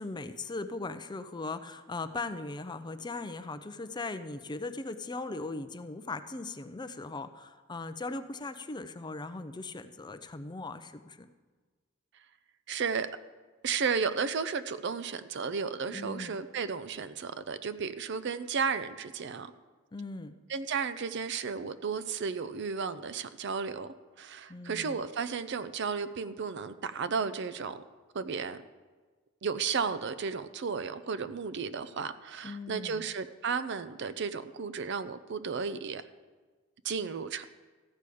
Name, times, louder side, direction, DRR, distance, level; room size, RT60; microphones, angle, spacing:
voice 1, 0.0-11.3 15.9-16.4 19.9-20.4 24.5-25.0 32.4-33.0, left 3 dB, 20° left, 9 dB, 0.5 m, -39 dB
voice 2, 12.7-13.1 13.6-19.5 20.5-27.8 28.1-28.6 29.4-36.0 36.8-37.4, right 5 dB, 60° right, 13 dB, 0.5 m, -33 dB
14.0 x 4.9 x 8.4 m, 1.4 s
head